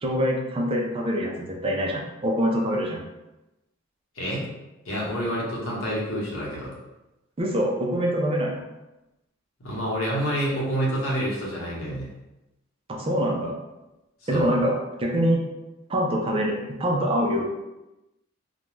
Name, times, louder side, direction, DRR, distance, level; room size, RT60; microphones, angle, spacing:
voice 1, 0.0-3.0 7.4-8.6 12.9-13.5 14.3-15.4 15.9-17.4, equal, 30° right, -1 dB, 0.4 m, -24 dB
voice 2, 4.1-4.5 4.8-6.7 9.6-12.1 14.3-14.5, equal, 90° left, -5 dB, 0.9 m, -28 dB
2.4 x 2.2 x 3.1 m, 0.98 s
head